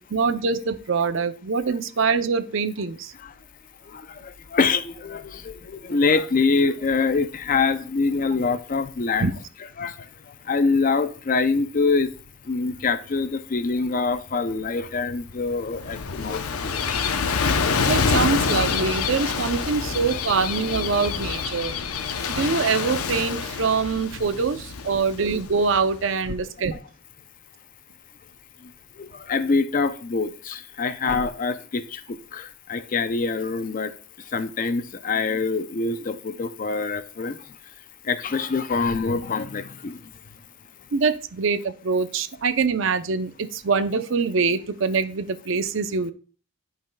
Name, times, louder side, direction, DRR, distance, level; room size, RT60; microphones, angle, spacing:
voice 1, 0.1-3.1 9.2-9.3 17.9-21.8 22.3-26.7 40.9-46.1, right 5 dB, 55° right, 0.5 m, -24 dB
voice 2, 3.8-9.3 9.8-12.1 12.4-17.8 28.6-28.7 29.0-37.6 38.0-40.1, left 4 dB, 40° left, 0.4 m, -25 dB
Gull seagull / Waves surf, 15.5-26.1, left 5 dB, 85° left, 0.7 m, -27 dB
12.0 x 5.5 x 2.2 m
head